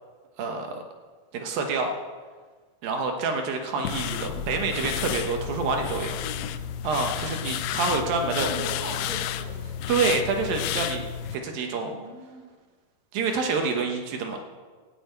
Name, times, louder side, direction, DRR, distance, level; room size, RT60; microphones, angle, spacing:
voice 1, 0.4-0.8 1.3-1.9 2.8-6.2 6.8-8.5 9.9-11.1 11.3-12.0 13.1-14.4, right 4 dB, 70° right, 4 dB, 2.7 m, -27 dB
sound 1, 3.8-11.4, left 9 dB, 85° left, 2.6 m, -31 dB
voice 2, 7.9-9.9 11.8-12.5, equal, 20° left, -1 dB, 1.1 m, -39 dB
14.0 x 6.4 x 9.2 m, 1.4 s
omnidirectional pair, 4.6 m